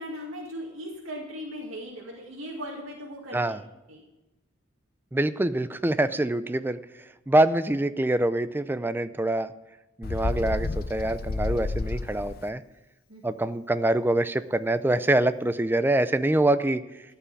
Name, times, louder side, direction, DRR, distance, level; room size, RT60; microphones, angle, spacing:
voice 1, 0.0-3.5 3.9-4.0 13.1-13.4, equal, 80° right, -2 dB, 2.2 m, -38 dB
voice 2, 5.1-6.8 7.3-9.5 10.0-12.6 13.2-16.8, right 1 dB, 10° right, 13 dB, 0.4 m, -25 dB
Bird, 10.0-12.5, left 3 dB, 50° left, 0.5 m, -30 dB
14.0 x 5.7 x 8.5 m, 1.0 s
head